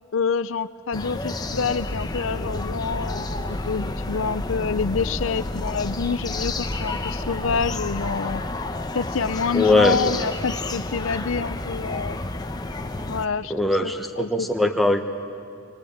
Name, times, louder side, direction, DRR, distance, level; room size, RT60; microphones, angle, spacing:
voice 1, 0.1-8.4 8.9-12.2 13.1-14.7, left 5 dB, 70° left, 14 dB, 0.5 m, -27 dB
sound 1, 0.9-13.3, left 2 dB, 20° left, 0.9 m, -31 dB
sound 2, 1.7-8.7, left 1 dB, 55° left, 1.7 m, -35 dB
voice 2, 9.5-10.2 13.5-15.0, left 2 dB, ahead, 3 dB, 1.1 m, -21 dB
25.0 x 21.5 x 8.6 m, 2.4 s
head